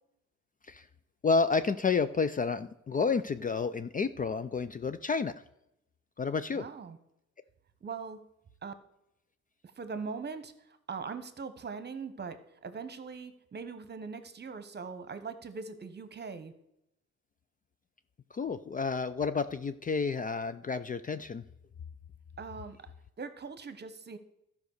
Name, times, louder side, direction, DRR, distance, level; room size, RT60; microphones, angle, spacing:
voice 1, 1.2-5.3 6.2-6.6 18.3-21.4, left 5 dB, 30° left, 13 dB, 0.4 m, -30 dB
voice 2, 6.5-7.0 7.8-8.2 8.6-8.7 9.7-16.5 22.4-22.8 23.2-24.2, right 5 dB, 35° right, 11 dB, 1.1 m, -41 dB
12.5 x 5.3 x 6.5 m, 0.82 s
cardioid pair, 90°, 30 cm